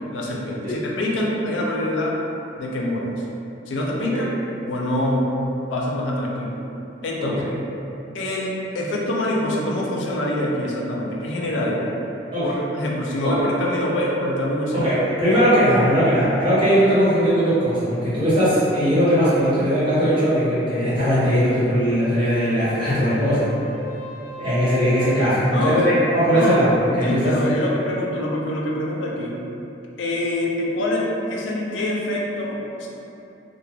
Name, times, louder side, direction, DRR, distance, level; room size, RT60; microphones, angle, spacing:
voice 1, 0.0-2.1 2.6-3.1 3.7-4.3 4.7-5.3 5.7-6.6 7.0-7.4 8.1-11.9 12.4-14.8 15.1-15.5 25.5-25.8 26.3-26.6 27.0-29.4 30.0-32.9, left 1 dB, 90° left, -2 dB, 0.4 m, -25 dB
voice 2, 3.9-4.3 7.2-7.5 12.3-12.5 13.2-13.5 14.7-23.5 24.4-27.5, equal, 25° right, -13 dB, 1.0 m, -19 dB
Wind instrument woodwind instrument, 22.1-26.3, left 1 dB, 15° left, 0.7 m, -37 dB
2.3 x 2.1 x 3.2 m, 2.8 s
head